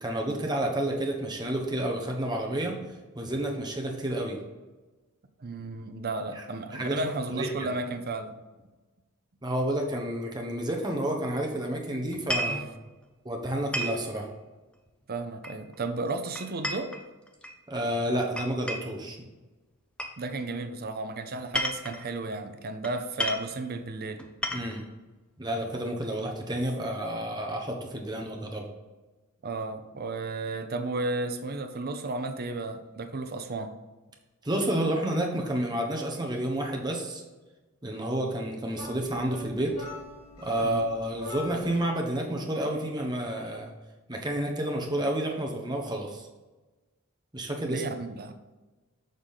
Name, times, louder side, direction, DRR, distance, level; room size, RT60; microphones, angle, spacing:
voice 1, 0.0-2.8 3.1-4.4 6.3-6.4 6.7-7.0 7.3-7.7 9.4-12.7 13.2-14.3 17.7-19.3 24.5-24.8 25.4-28.6 34.4-37.2 37.8-39.7 40.4-43.7 44.1-46.3 47.3-47.8, right 1 dB, 20° right, 1 dB, 1.0 m, -30 dB
voice 2, 5.4-8.4 12.4-12.7 15.1-16.9 20.2-24.2 29.4-33.7 40.6-40.9 47.7-48.4, right 2 dB, 45° right, 8 dB, 0.6 m, -33 dB
sound 1, 12.1-12.6 13.7-14.0 15.4-15.8 16.4-17.6 18.4-19.0 20.0-20.2 21.3-22.1 22.8-22.9 23.2-23.5 24.2-24.8, equal, 5° left, 0.5 m, -32 dB
sound 2, 38.7-41.9, left 2 dB, 75° left, 2.0 m, -43 dB
6.5 x 3.7 x 5.5 m, 1.2 s
head